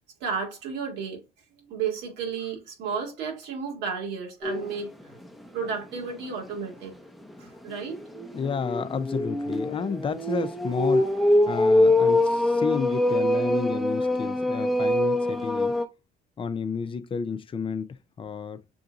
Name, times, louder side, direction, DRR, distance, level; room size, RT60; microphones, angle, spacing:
voice 1, 0.2-1.2 1.6-5.2 5.5-6.9 7.4-8.0, right 6 dB, 85° right, 2.3 m, -32 dB
sound 1, 4.4-4.8 5.2-5.3 5.7-5.8 7.9-15.9, left 1 dB, ahead, 0.8 m, -24 dB
voice 2, 8.3-11.1 11.5-15.8 16.4-17.9 18.2-18.6, left 6 dB, 30° left, 0.6 m, -31 dB
6.9 x 2.6 x 2.5 m
cardioid pair, 110°, 17 cm